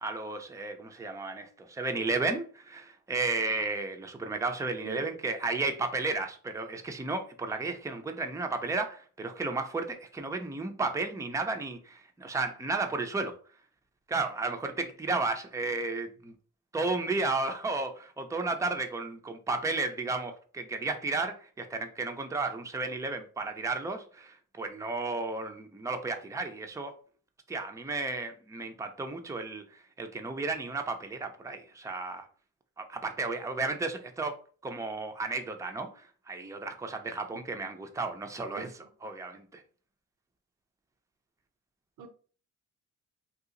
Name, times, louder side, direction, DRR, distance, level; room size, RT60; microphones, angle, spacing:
voice 1, 0.0-13.3 14.1-16.3 16.7-26.9 27.5-32.3 32.8-34.4 34.6-38.7 39.0-39.6, right 3 dB, 10° right, 0.5 m, -33 dB
voice 2, 38.5-38.9 42.0-42.1, right 5 dB, 80° right, 0.7 m, -41 dB
2.8 x 2.4 x 3.7 m
cardioid pair, 90°, 30 cm